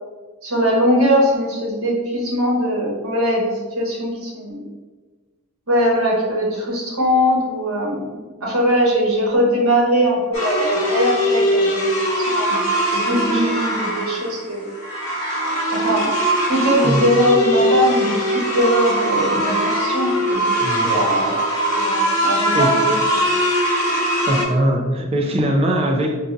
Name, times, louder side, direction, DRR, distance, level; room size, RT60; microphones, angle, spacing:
voice 1, 0.4-4.7 5.7-12.6 12.9-14.7 15.7-16.1 16.5-20.5 20.8-21.4 21.7-23.3, equal, 75° right, -3 dB, 1.0 m, -20 dB
sound 1, 10.3-24.4, equal, 70° left, 0.9 m, -21 dB
voice 2, 20.6-21.0 22.5-22.8 24.3-26.2, right 1 dB, 25° right, 3 dB, 0.4 m, -20 dB
4.0 x 2.4 x 2.6 m, 1.3 s
head